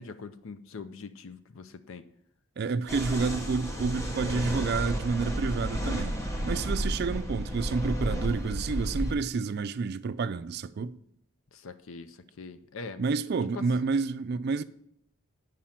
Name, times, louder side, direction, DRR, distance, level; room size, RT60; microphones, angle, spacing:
voice 1, 0.0-2.1 11.5-13.0 13.5-13.6, left 4 dB, 65° left, 0.5 m, -43 dB
voice 2, 2.6-6.2 6.4-11.0 13.0-14.6, right 4 dB, 45° right, 0.3 m, -29 dB
sound 1, 2.9-9.1, equal, 15° left, 0.8 m, -32 dB
8.7 x 5.0 x 5.7 m
head